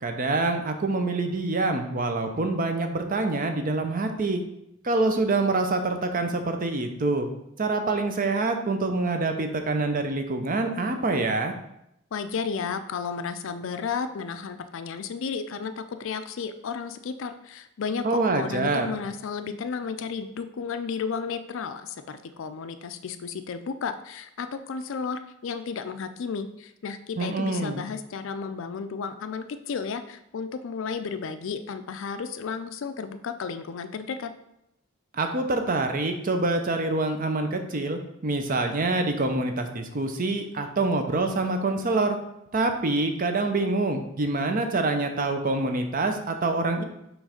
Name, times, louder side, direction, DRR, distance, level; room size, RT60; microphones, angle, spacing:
voice 1, 0.0-4.4 4.8-7.3 7.6-11.5 18.0-18.9 27.2-27.8 35.1-42.2 42.5-46.8, right 2 dB, 40° right, 6 dB, 0.7 m, -26 dB
voice 2, 12.1-34.3, left 5 dB, 65° left, 9 dB, 0.4 m, -33 dB
6.3 x 3.2 x 5.0 m, 0.81 s
head